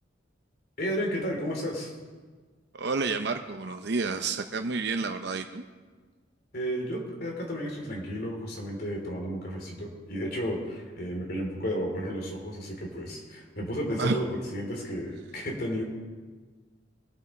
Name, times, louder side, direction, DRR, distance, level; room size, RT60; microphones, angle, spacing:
voice 1, 0.8-1.9 6.5-14.2 14.5-15.8, equal, 50° left, 0 dB, 3.0 m, -33 dB
voice 2, 2.7-5.6 14.0-14.2, right 4 dB, 60° right, 6 dB, 0.6 m, -30 dB
21.5 x 8.4 x 4.3 m, 1.4 s
head